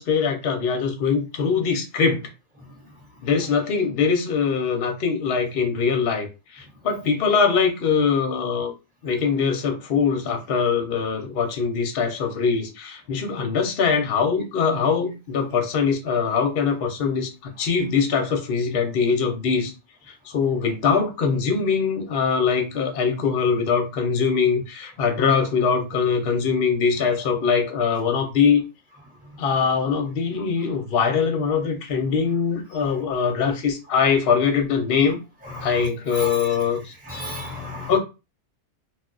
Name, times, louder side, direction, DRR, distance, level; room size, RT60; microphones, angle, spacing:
voice 1, 0.0-2.3 3.2-6.3 6.5-8.7 9.0-19.7 20.1-28.6 29.4-35.2 35.6-36.9 37.9-38.0, left 6 dB, 55° left, 0.8 m, -22 dB
voice 2, 2.6-2.9 32.8-32.9 35.4-36.6 37.0-38.0, left 1 dB, 10° right, 0.8 m, -35 dB
2.3 x 2.3 x 3.8 m
omnidirectional pair, 1.4 m